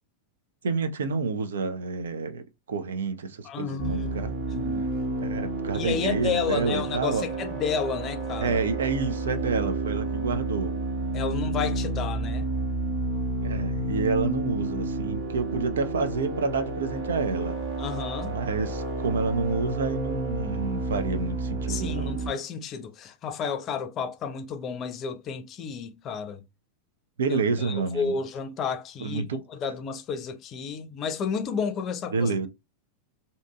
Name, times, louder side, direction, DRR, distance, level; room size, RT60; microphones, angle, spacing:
voice 1, 0.6-4.3 5.2-7.2 8.4-10.8 13.4-17.6 18.2-22.1 27.2-28.1 29.0-29.4 32.1-32.5, right 4 dB, 65° right, 0.4 m, -29 dB
voice 2, 3.4-4.9 5.7-8.6 11.1-12.5 17.8-18.3 21.7-26.4 27.3-32.5, left 6 dB, 30° left, 0.4 m, -32 dB
sound 1, 3.8-22.3, right 2 dB, 45° right, 1.0 m, -30 dB
2.6 x 2.5 x 2.2 m
figure-of-eight pair, 90°, 0 cm